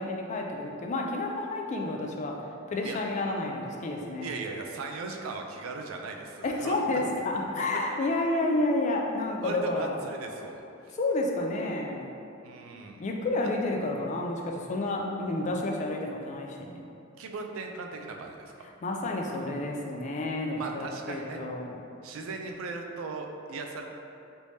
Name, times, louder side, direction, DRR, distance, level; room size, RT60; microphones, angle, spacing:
voice 1, 0.0-2.4 2.7-4.3 6.4-10.0 10.9-12.1 13.0-16.8 18.8-21.8, left 2 dB, 35° left, 1 dB, 0.3 m, -30 dB
voice 2, 4.2-6.8 7.9-8.0 9.4-11.0 12.4-13.0 17.2-18.6 20.5-21.4 22.0-23.8, right 3 dB, 85° right, 3 dB, 0.4 m, -38 dB
3.3 x 3.2 x 2.6 m, 2.7 s
head